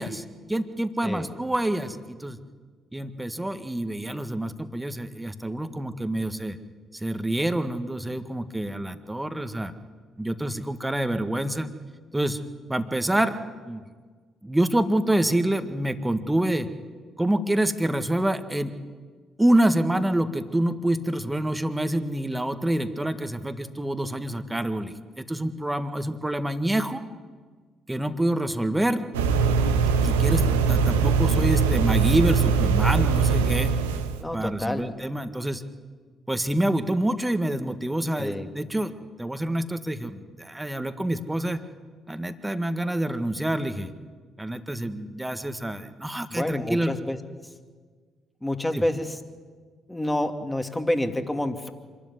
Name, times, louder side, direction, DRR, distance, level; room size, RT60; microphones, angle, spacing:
voice 1, 0.0-2.4 2.9-6.6 6.9-9.7 10.2-11.7 12.1-12.4 12.7-13.4 13.7-13.8 14.4-16.7 17.2-18.7 19.4-27.0 27.9-29.1 30.0-33.7 34.3-35.6 36.3-38.9 39.2-41.6 42.1-43.9 44.4-46.9 48.7-48.8, right 1 dB, 10° right, 9 dB, 1.7 m, -27 dB
sound 1, 29.1-34.2, right 5 dB, 85° right, 1.2 m, -21 dB
voice 2, 34.2-34.9 38.2-38.5 46.3-47.2 48.4-49.2 49.9-51.7, left 1 dB, 10° left, 6 dB, 2.4 m, -28 dB
26.0 x 12.5 x 9.7 m, 1.5 s
hypercardioid pair, 45°, 0 cm